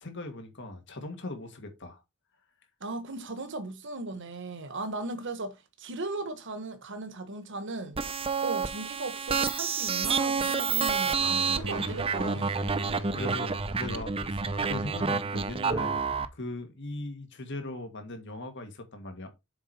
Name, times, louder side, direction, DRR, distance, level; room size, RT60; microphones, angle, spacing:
voice 1, 0.0-2.0 12.8-16.0 16.3-19.3, left 2 dB, 60° left, 1.9 m, -39 dB
voice 2, 2.8-8.0 8.4-12.5, right 2 dB, 60° right, 1.3 m, -37 dB
sound 1, 8.0-16.3, right 5 dB, 25° right, 0.6 m, -29 dB
sound 2, 9.2-14.7, right 1 dB, 85° right, 1.7 m, -44 dB
7.2 x 4.7 x 4.3 m
head